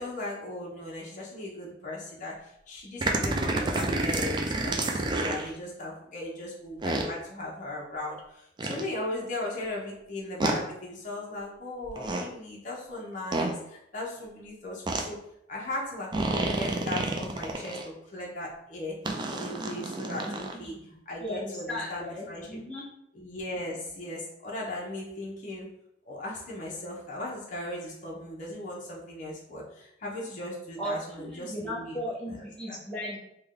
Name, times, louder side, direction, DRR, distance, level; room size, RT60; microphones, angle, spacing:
voice 1, 0.0-15.2 15.5-20.8 21.1-22.6 23.1-25.7 26.1-32.0 32.3-32.7, left 1 dB, 45° left, -3 dB, 0.7 m, -38 dB
sound 1, 3.0-5.5 6.8-7.1 8.6-8.8 10.4-10.6 11.8-12.3 13.3-13.5 14.9-15.0 16.1-17.8 19.0-20.6, right 2 dB, 25° right, 0.3 m, -29 dB
voice 2, 20.2-20.9 21.2-22.8 30.8-31.0 31.3-33.2, equal, 5° left, -8 dB, 1.1 m, -36 dB
3.3 x 2.2 x 3.6 m, 0.78 s
head